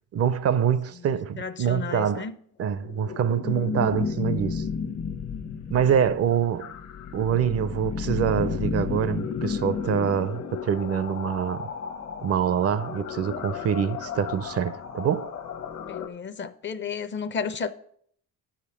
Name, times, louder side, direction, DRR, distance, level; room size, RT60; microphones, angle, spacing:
voice 1, 0.1-2.3 2.6-4.7 5.7-6.7 7.1-11.7 12.2-15.3, right 8 dB, 50° right, 0.5 m, -25 dB
voice 2, 1.4-2.3 15.8-17.7, left 6 dB, 35° left, 0.6 m, -32 dB
sound 1, 2.7-16.1, left 6 dB, 55° left, 1.0 m, -33 dB
10.5 x 5.1 x 6.8 m
cardioid pair, 120°, 32 cm